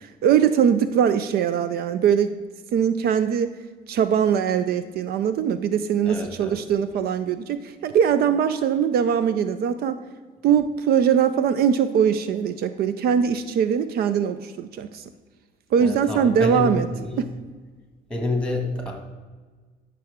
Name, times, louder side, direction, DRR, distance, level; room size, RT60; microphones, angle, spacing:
voice 1, 0.0-2.3 2.7-3.5 3.9-10.0 10.4-15.0 15.7-16.9 17.2-17.3, right 8 dB, 65° right, 12 dB, 0.5 m, -21 dB
voice 2, 6.0-6.6 15.8-17.2 18.1-18.9, left 2 dB, 5° left, 2 dB, 2.0 m, -28 dB
12.0 x 6.0 x 3.6 m, 1.4 s
cardioid pair, 110°, 17 cm